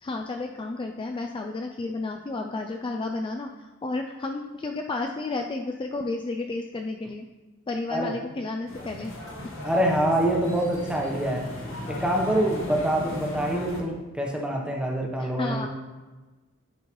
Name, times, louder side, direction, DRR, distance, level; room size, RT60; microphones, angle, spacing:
voice 1, 0.0-7.3 7.7-9.1 15.2-15.7, left 3 dB, 25° left, 3 dB, 0.3 m, -32 dB
sound 1, 8.7-13.8, left 1 dB, 65° left, 1.6 m, -36 dB
voice 2, 9.6-11.5 11.9-15.7, right 1 dB, 5° right, -1 dB, 0.9 m, -25 dB
10.5 x 4.6 x 3.1 m, 1.2 s
head